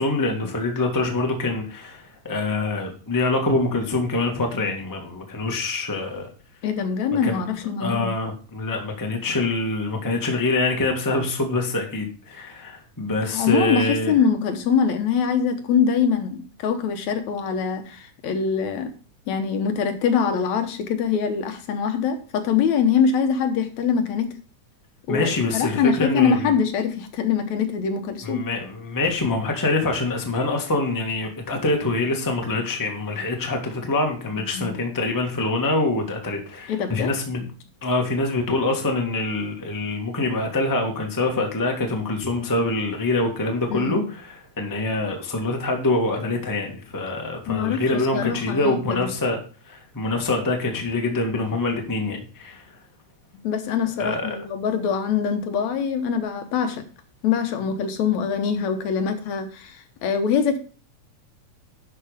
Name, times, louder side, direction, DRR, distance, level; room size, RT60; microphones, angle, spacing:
voice 1, 0.0-6.3 7.2-7.4 7.8-14.1 25.1-26.5 28.2-37.4 37.8-49.4 49.7-52.6 54.0-54.4, left 2 dB, 10° left, 1.1 m, -25 dB
voice 2, 6.6-8.1 13.3-18.9 19.3-24.3 25.1-28.4 34.3-34.8 36.7-37.2 43.7-44.1 47.5-49.1 53.3-56.8 57.2-60.6, left 6 dB, 75° left, 2.4 m, -23 dB
11.5 x 5.4 x 5.1 m
omnidirectional pair, 3.4 m